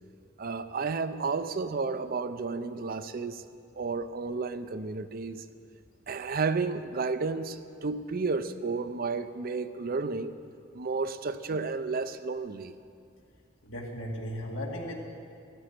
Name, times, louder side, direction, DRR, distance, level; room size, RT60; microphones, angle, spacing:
voice 1, 0.4-3.4 3.8-5.4 6.1-10.3 10.7-12.7, right 4 dB, 45° right, 12 dB, 0.5 m, -32 dB
voice 2, 13.6-14.9, equal, 75° left, -1 dB, 2.4 m, -36 dB
15.5 x 13.0 x 6.0 m, 2.5 s
head